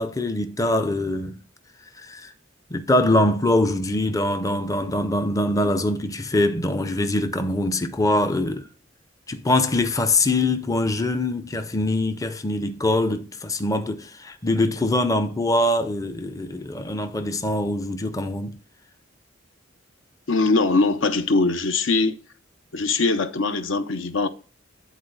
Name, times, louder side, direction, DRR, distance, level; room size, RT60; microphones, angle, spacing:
voice 1, 0.0-1.4 2.0-2.3 2.7-8.7 9.3-18.6, left 1 dB, 15° left, 0.5 m, -23 dB
voice 2, 20.3-22.2 22.7-24.3, left 3 dB, 65° left, 0.7 m, -21 dB
10.0 x 4.0 x 3.9 m
head